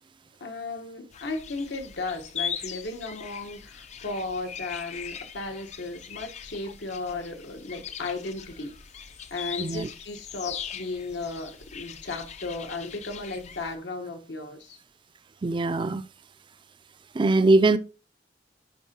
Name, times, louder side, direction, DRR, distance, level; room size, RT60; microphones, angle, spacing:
voice 1, 0.4-8.8 9.3-14.8, left 3 dB, 80° left, 1.1 m, -35 dB
sound 1, 1.1-13.8, left 8 dB, 40° left, 0.4 m, -40 dB
voice 2, 9.6-9.9 15.4-16.0 17.1-17.8, right 2 dB, 30° right, 0.4 m, -21 dB
10.0 x 3.7 x 2.8 m
head